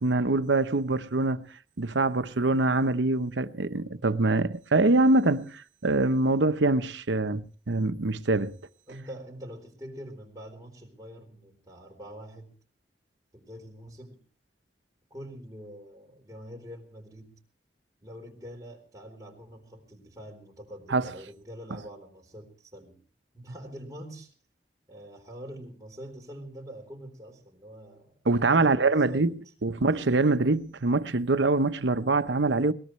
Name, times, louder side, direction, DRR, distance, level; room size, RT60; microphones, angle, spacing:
voice 1, 0.0-1.5 1.8-8.5 20.9-21.1 28.3-32.7, right 2 dB, 90° right, 0.9 m, -24 dB
voice 2, 8.9-12.5 13.3-14.2 15.1-17.4 18.0-23.0 23.3-24.3 24.9-28.2 28.5-29.8, equal, 20° right, 3.9 m, -45 dB
22.0 x 19.5 x 3.2 m
head